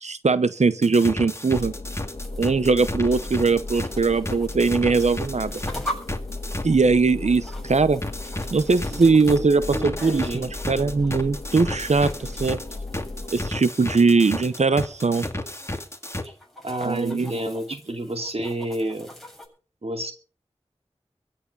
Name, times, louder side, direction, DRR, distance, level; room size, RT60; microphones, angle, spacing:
voice 1, 0.0-1.7 2.4-5.5 6.6-8.0 8.5-12.6 13.3-15.2 16.8-17.3, right 4 dB, 90° right, 0.8 m, -21 dB
sound 1, 0.8-6.6 8.0-16.2, left 1 dB, 25° left, 2.5 m, -32 dB
sound 2, 1.5-13.5, left 2 dB, 55° left, 2.1 m, -36 dB
sound 3, 2.0-19.5, equal, ahead, 7.6 m, -43 dB
voice 2, 8.9-10.5 16.2-16.3 16.6-19.1 19.8-20.1, right 1 dB, 65° right, 2.6 m, -30 dB
23.0 x 8.7 x 5.5 m
wide cardioid pair, 45°, 11 cm